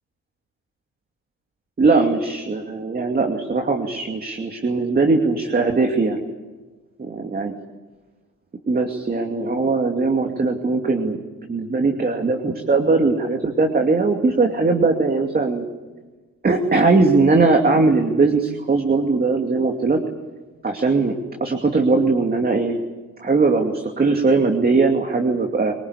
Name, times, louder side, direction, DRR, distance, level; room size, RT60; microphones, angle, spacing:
voice 1, 1.8-6.2 7.0-7.5 8.7-11.2 11.5-15.6 16.4-20.0 20.6-21.1 21.4-22.8 23.2-25.7, right 3 dB, 30° right, 3 dB, 2.6 m, -19 dB
25.0 x 18.0 x 9.9 m, 1.3 s
cardioid pair, 90°, 30 cm